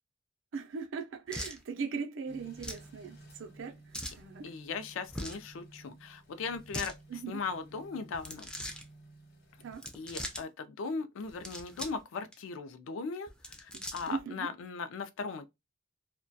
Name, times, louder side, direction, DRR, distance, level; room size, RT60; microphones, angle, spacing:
voice 1, 0.5-4.5 7.1-7.4 9.6-9.9 13.7-14.5, right 5 dB, 70° right, 0.4 m, -39 dB
sound 1, 1.3-1.6 2.6-2.9 3.9-4.2 5.1-5.5 6.5-6.9 8.1-8.8 9.7-10.4 11.3-12.0 12.3-12.4 13.3-14.2, equal, 5° left, 0.3 m, -41 dB
sound 2, 2.3-9.7, right 2 dB, 55° left, 0.9 m, -55 dB
voice 2, 4.4-8.5 9.9-15.5, left 4 dB, 75° left, 0.4 m, -38 dB
2.2 x 2.2 x 2.5 m
head